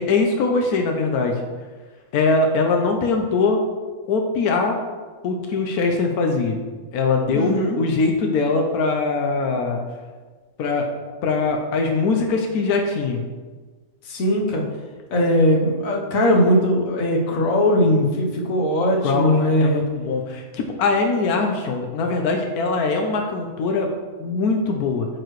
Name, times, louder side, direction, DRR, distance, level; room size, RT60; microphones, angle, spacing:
voice 1, 0.0-1.3 2.1-3.6 4.1-4.8 5.2-6.6 6.9-9.8 10.6-10.9 11.2-13.2 19.0-23.9 24.2-25.1, left 4 dB, 90° left, 3 dB, 1.2 m, -22 dB
voice 2, 7.3-7.8 14.1-14.6 15.1-19.8, equal, 65° left, 0 dB, 1.4 m, -19 dB
8.9 x 4.7 x 3.1 m, 1.4 s
omnidirectional pair, 1.5 m